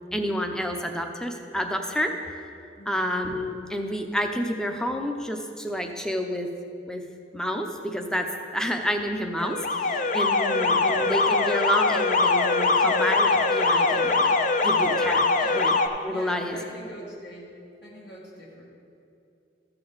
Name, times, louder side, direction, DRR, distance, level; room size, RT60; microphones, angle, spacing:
voice 1, 0.1-2.1 2.9-6.5 6.9-7.0 7.3-9.6 9.8-14.3 14.6-15.3 15.5-15.7 16.0-16.6, equal, 5° left, 4 dB, 0.6 m, -29 dB
voice 2, 2.8-3.1 10.5-10.7 15.4-15.7 16.1-17.5 17.8-18.6, equal, 65° left, -4 dB, 1.9 m, -43 dB
Alarm, 9.4-15.9, left 3 dB, 45° left, 0.5 m, -22 dB
13.5 x 6.8 x 4.0 m, 2.6 s
head